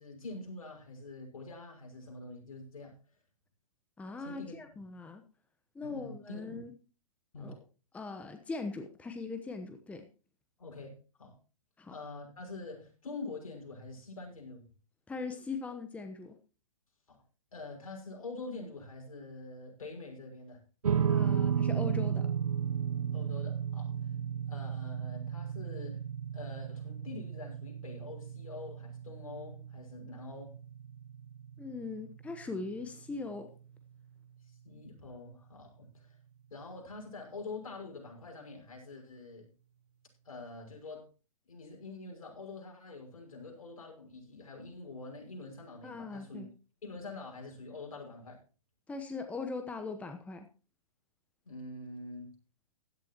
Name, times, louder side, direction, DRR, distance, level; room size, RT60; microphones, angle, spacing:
voice 1, 0.0-3.0 4.2-4.6 5.8-6.6 7.3-7.6 10.6-11.3 11.9-14.6 17.1-17.2 17.5-20.6 23.1-24.1 24.5-26.0 26.3-30.6 34.5-36.2 36.5-39.4 40.2-41.0 41.5-46.4 46.8-48.4 51.4-52.3, left 3 dB, 70° left, 1 dB, 6.0 m, -45 dB
voice 2, 4.0-5.2 5.7-6.7 7.4-7.6 7.9-10.0 11.8-11.9 15.1-16.4 21.1-22.3 31.6-33.5 45.8-46.5 48.9-50.5, left 3 dB, 5° left, 7 dB, 1.0 m, -40 dB
sound 1, 20.8-33.4, right 8 dB, 80° right, 0.6 m, -34 dB
16.0 x 11.5 x 2.9 m, 0.34 s
figure-of-eight pair, 120°, 19 cm